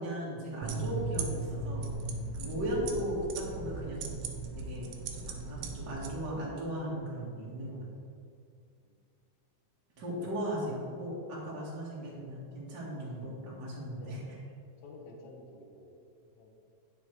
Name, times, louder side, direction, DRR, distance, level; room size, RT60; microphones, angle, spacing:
voice 1, 0.0-1.9 2.3-4.1 4.6-4.8 5.3-7.8 10.0-14.4, equal, 40° right, -6 dB, 2.5 m, -37 dB
sound 1, 0.6-6.1, right 3 dB, 70° right, 1.6 m, -37 dB
voice 2, 13.9-14.2 14.8-16.5, left 2 dB, 75° left, -1 dB, 2.5 m, -52 dB
10.0 x 6.4 x 4.7 m, 2.4 s
omnidirectional pair, 3.4 m